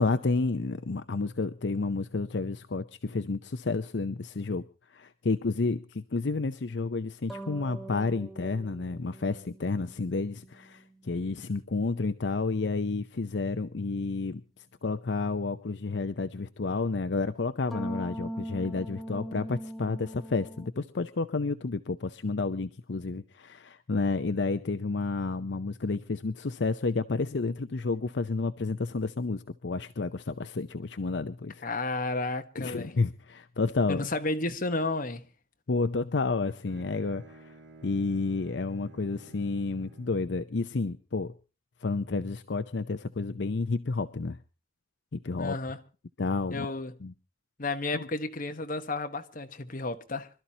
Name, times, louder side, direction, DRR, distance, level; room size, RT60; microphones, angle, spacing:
voice 1, 0.0-4.6 4.9-14.4 14.8-31.6 32.6-34.1 35.7-37.5 37.8-41.3 41.8-44.4 45.1-45.6 46.2-46.7 47.0-47.1 47.9-48.1, left 3 dB, 70° left, 0.6 m, -30 dB
sound 1, 7.3-11.8 17.7-20.7, right 1 dB, ahead, 1.4 m, -41 dB
voice 2, 31.6-32.9 33.9-35.2 45.4-45.8 46.5-46.9 47.6-50.3, left 2 dB, 50° left, 1.2 m, -32 dB
Bowed string instrument, 36.5-40.3, right 3 dB, 90° right, 2.1 m, -53 dB
25.5 x 13.0 x 2.8 m
head